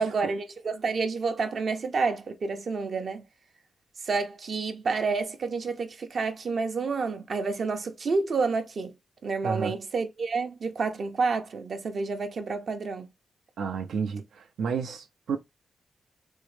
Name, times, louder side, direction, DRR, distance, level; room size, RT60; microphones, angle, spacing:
voice 1, 0.0-3.2 4.0-9.0 9.2-13.1, right 4 dB, 55° right, 0.7 m, -29 dB
voice 2, 9.4-9.8 13.6-15.4, right 6 dB, 90° right, 0.6 m, -31 dB
3.6 x 2.1 x 3.2 m
wide cardioid pair, 110°, 0 cm